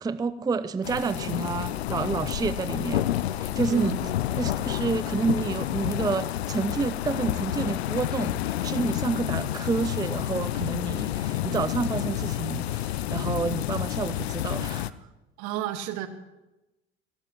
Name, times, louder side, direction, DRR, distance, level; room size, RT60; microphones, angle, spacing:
voice 1, 0.0-4.0 4.4-14.9, right 4 dB, 10° right, 14 dB, 0.5 m, -29 dB
sound 1, 0.8-14.9, left 13 dB, 85° left, 0.6 m, -29 dB
voice 2, 3.6-4.0 15.4-16.1, right 12 dB, 65° right, 9 dB, 1.6 m, -31 dB
21.0 x 17.0 x 3.0 m, 0.99 s
hypercardioid pair, 70°, 31 cm